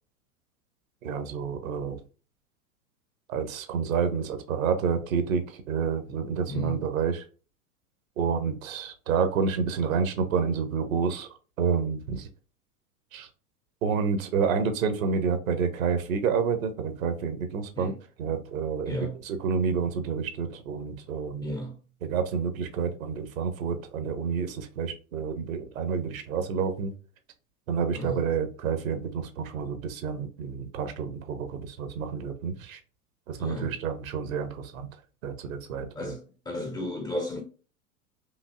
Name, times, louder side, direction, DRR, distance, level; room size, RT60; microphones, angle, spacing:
voice 1, 1.0-2.0 3.3-7.2 8.2-11.3 11.6-12.3 13.1-13.3 13.8-17.9 18.2-19.0 19.2-21.5 22.0-26.9 27.7-32.8 33.3-34.9 35.2-36.1, right 6 dB, 60° right, 0.9 m, -29 dB
voice 2, 6.5-6.8 17.7-17.9 18.9-19.1 21.4-21.8 27.9-28.2 33.4-33.7 36.0-37.4, left 1 dB, 10° left, 0.4 m, -34 dB
5.2 x 2.6 x 2.4 m
figure-of-eight pair, 90°, 45 cm